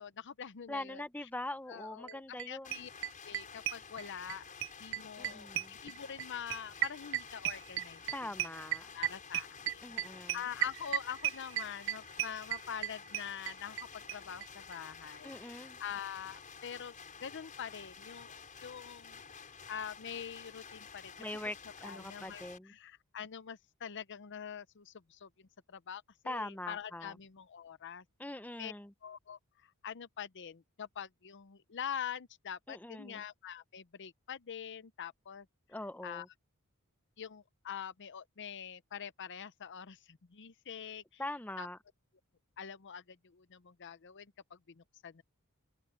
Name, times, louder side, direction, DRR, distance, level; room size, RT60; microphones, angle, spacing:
voice 1, 0.0-1.3 1.7-2.9 3.2-4.5 4.8-8.0 8.9-9.8 10.2-16.9 17.2-18.4 18.6-21.1 21.8-28.0 28.6-28.7 29.0-35.5 36.0-36.3 37.2-41.2 41.6-41.7 42.6-45.2, left 8 dB, 55° left, 0.7 m, -45 dB
voice 2, 0.7-2.8 5.2-5.7 8.1-8.9 9.8-10.4 15.2-15.8 21.2-22.7 26.3-27.1 28.2-28.9 32.7-33.2 35.7-36.3 41.2-41.8, left 1 dB, 5° left, 0.7 m, -42 dB
sound 1, 2.1-2.2 2.4-2.5 2.7-4.4 4.6-13.8 14.1-14.2 14.4-14.5 14.7-14.8, right 13 dB, 60° right, 0.5 m, -34 dB
sound 2, 2.6-22.6, left 6 dB, 35° left, 5.4 m, -51 dB
head